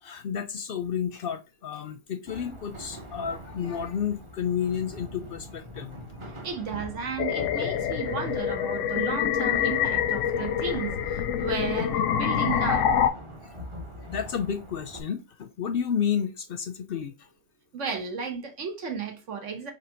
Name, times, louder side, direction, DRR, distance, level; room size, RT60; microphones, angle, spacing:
voice 1, 0.0-5.9 13.4-13.5 14.0-17.3, left 8 dB, 60° left, 0.6 m, -31 dB
sound 1, 2.3-15.0, equal, 30° right, 0.8 m, -43 dB
voice 2, 6.4-12.9 17.7-19.7, right 6 dB, 80° right, 1.4 m, -34 dB
sound 2, 7.2-13.1, left 9 dB, 85° left, 0.9 m, -26 dB
3.9 x 3.0 x 4.4 m
omnidirectional pair, 1.2 m